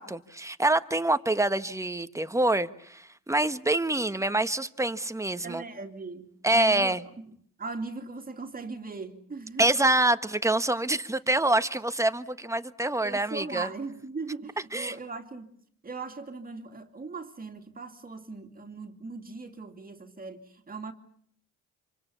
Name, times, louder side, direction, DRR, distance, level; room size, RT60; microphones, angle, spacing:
voice 1, 0.0-5.6 6.4-7.0 9.6-13.7 14.7-14.9, right 2 dB, 10° right, 1.4 m, -26 dB
voice 2, 5.4-7.3 7.6-9.6 13.0-15.5 15.8-20.9, right 4 dB, 30° right, 2.6 m, -39 dB
27.0 x 25.5 x 7.1 m
cardioid pair, 90°, 30 cm